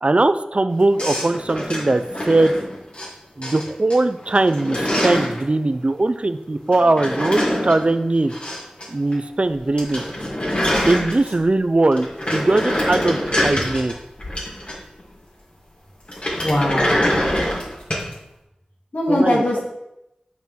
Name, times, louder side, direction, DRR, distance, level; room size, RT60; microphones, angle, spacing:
voice 1, 0.0-2.5 3.4-8.3 8.9-10.0 10.9-13.9 19.1-19.6, right 2 dB, 45° right, 11 dB, 0.5 m, -20 dB
sound 1, 1.0-3.1 3.4-4.0 4.2-5.4 6.7-8.9 9.1-9.2 9.5-9.6 9.8-11.5 11.9-15.0 16.1-18.1, equal, 45° left, 2.6 m, -24 dB
voice 2, 16.4-17.1 18.9-19.6, left 1 dB, 75° left, -3 dB, 2.7 m, -20 dB
7.2 x 5.8 x 5.7 m, 0.87 s
wide cardioid pair, 45°, 3 cm